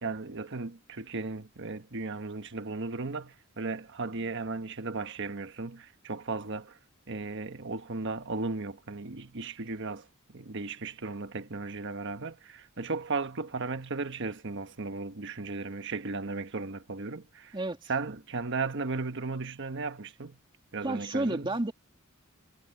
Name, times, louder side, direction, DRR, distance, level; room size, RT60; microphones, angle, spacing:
voice 1, 0.0-6.8 7.1-17.6 17.9-20.4 20.7-21.5, right 3 dB, 60° right, 1.3 m, -36 dB
voice 2, 17.5-17.9 20.8-21.7, right 2 dB, 25° right, 2.4 m, -31 dB
head